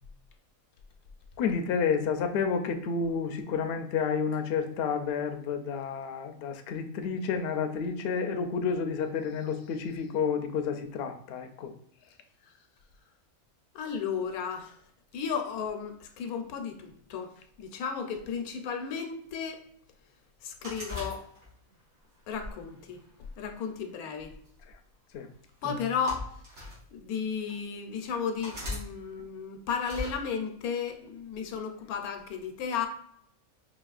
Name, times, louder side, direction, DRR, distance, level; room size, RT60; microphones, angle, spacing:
voice 1, 1.4-11.7 25.1-25.3, left 6 dB, 65° left, 6 dB, 0.6 m, -30 dB
voice 2, 13.7-14.8 15.1-17.3 17.6-19.6 20.4-21.2 22.3-23.0 23.4-24.3 25.6-26.3 26.9-32.9, left 6 dB, 90° left, 6 dB, 1.1 m, -34 dB
sound 1, 20.6-21.7 22.3-23.5 24.5-24.7 25.7-26.8 27.5-27.6 28.4-28.9 29.8-30.2, left 2 dB, 75° right, 2.2 m, -39 dB
5.1 x 2.9 x 2.3 m, 0.67 s
omnidirectional pair, 1.5 m